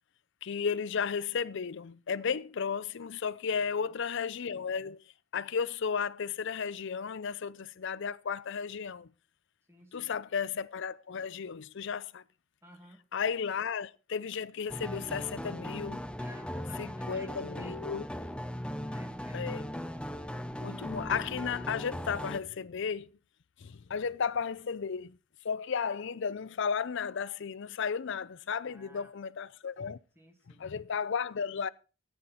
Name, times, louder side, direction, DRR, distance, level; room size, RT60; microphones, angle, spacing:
voice 1, 0.4-5.0 5.3-9.1 9.9-12.2 13.1-16.0 16.8-18.1 19.3-19.7 20.6-23.2 23.6-25.2 25.4-30.0 30.6-31.7, left 6 dB, 60° left, 0.5 m, -34 dB
voice 2, 3.5-3.9 9.7-10.2 12.6-13.0 16.2-17.9 18.9-19.6 28.6-29.1 30.2-30.7, equal, 10° right, 2.2 m, -54 dB
sound 1, 14.7-22.4, equal, 5° left, 0.5 m, -38 dB
14.5 x 9.4 x 4.2 m
head